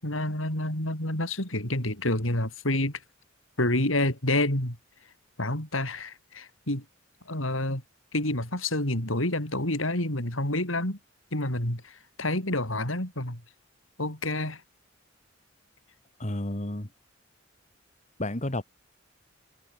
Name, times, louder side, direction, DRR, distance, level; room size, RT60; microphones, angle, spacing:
voice 1, 0.0-3.0 3.6-4.8 5.4-6.8 7.3-7.8 8.1-11.0 11.3-11.8 12.2-13.4 14.0-14.6, left 1 dB, 85° left, 7.8 m, -28 dB
voice 2, 16.2-16.9 18.2-18.6, left 1 dB, 35° left, 3.0 m, -31 dB
head